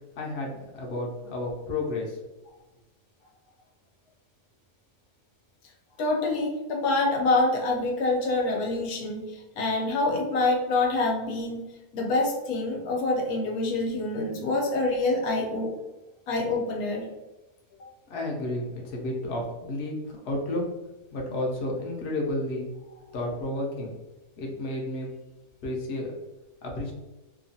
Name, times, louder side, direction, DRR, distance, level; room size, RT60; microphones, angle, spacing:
voice 1, 0.2-2.2 18.1-20.7 21.1-22.7 23.1-23.9 24.4-25.1 25.6-26.1 26.6-26.9, left 1 dB, 55° left, -1 dB, 0.9 m, -31 dB
voice 2, 6.0-9.2 9.6-11.6 11.9-15.7 16.3-17.1, left 2 dB, 90° left, 0 dB, 1.2 m, -26 dB
2.9 x 2.3 x 2.6 m, 1.0 s
omnidirectional pair, 1.5 m